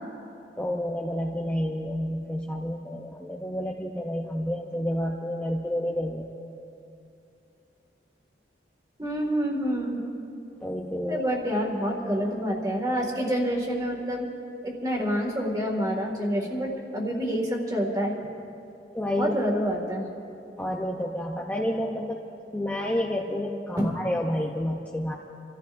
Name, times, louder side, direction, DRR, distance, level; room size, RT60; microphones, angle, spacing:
voice 1, 0.6-6.3 10.6-11.2 18.9-19.3 20.6-22.2 22.5-25.2, left 1 dB, 10° left, -1 dB, 0.6 m, -29 dB
voice 2, 9.0-10.0 11.1-14.3 14.6-18.2 19.2-20.1 23.8-24.0, equal, 20° right, 0 dB, 2.0 m, -27 dB
29.5 x 14.0 x 2.6 m, 2.7 s
head